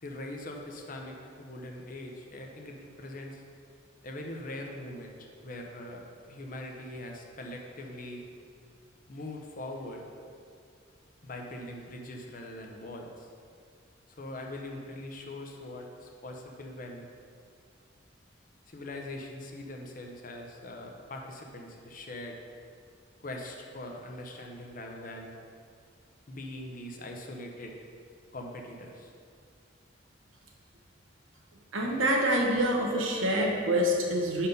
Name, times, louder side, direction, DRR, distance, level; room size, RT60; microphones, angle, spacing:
voice 1, 0.0-3.4 4.0-8.2 9.1-10.0 11.2-13.3 14.1-17.1 18.7-22.4 23.2-25.3 26.3-27.8 28.3-29.1, left 1 dB, 45° left, 2 dB, 0.7 m, -42 dB
voice 2, 31.7-34.5, equal, 85° right, 0 dB, 1.0 m, -26 dB
5.3 x 4.3 x 5.2 m, 2.2 s
head